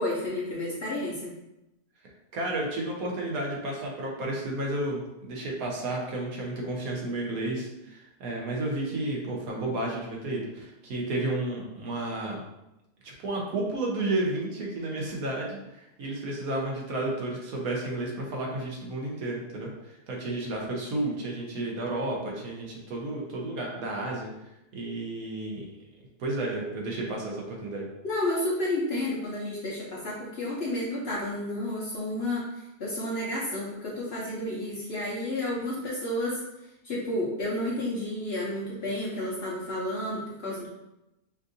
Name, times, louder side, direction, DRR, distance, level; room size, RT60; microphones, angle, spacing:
voice 1, 0.0-1.3 28.0-36.4 36.8-40.7, left 1 dB, 50° left, -6 dB, 0.8 m, -31 dB
voice 2, 2.3-12.4 13.0-24.3 24.7-25.7 26.2-27.9, right 2 dB, 65° right, -2 dB, 1.3 m, -32 dB
5.2 x 2.5 x 2.6 m, 0.91 s
omnidirectional pair, 1.7 m